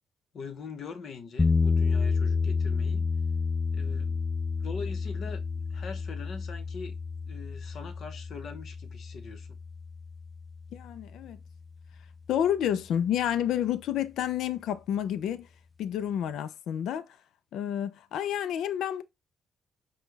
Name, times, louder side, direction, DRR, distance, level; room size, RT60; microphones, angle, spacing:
voice 1, 0.3-3.1 3.7-4.2 4.6-7.0 7.3-9.6, left 5 dB, 60° left, 0.8 m, -42 dB
sound 1, 1.4-11.4, left 4 dB, 20° left, 0.4 m, -30 dB
voice 2, 10.7-11.4 12.3-15.5 15.8-17.2 17.5-19.0, left 10 dB, 80° left, 0.4 m, -29 dB
5.1 x 2.3 x 3.3 m
cardioid pair, 90°, 0 cm